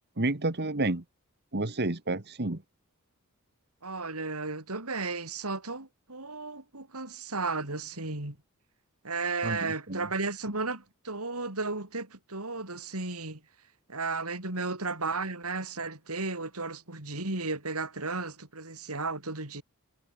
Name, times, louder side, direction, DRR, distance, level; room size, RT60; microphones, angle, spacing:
voice 1, 0.2-1.0 1.5-2.6 9.4-10.0, right 2 dB, 50° right, 1.8 m, -30 dB
voice 2, 3.8-8.4 9.0-13.4 13.9-19.6, right 3 dB, 85° right, 4.9 m, -34 dB
head